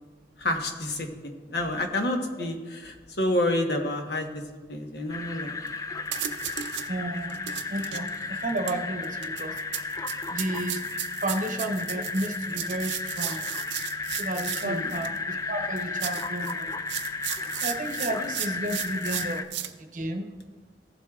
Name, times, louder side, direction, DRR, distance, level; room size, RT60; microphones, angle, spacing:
voice 1, 0.4-4.4 4.7-5.6 14.6-14.9 17.4-17.5, left 1 dB, 65° left, 3 dB, 1.1 m, -29 dB
sound 1, 5.1-19.5, left 4 dB, 20° left, 0.4 m, -34 dB
sound 2, 5.7-5.8 6.1-6.9 7.3-15.2 15.8-19.7, right 11 dB, 90° right, 0.6 m, -35 dB
voice 2, 6.9-7.4 7.7-9.6 10.3-10.8 11.1-13.5 14.2-16.7 17.4-19.5 19.8-20.3, right 1 dB, 45° right, 4 dB, 0.9 m, -32 dB
15.5 x 7.7 x 2.4 m, 1.4 s
head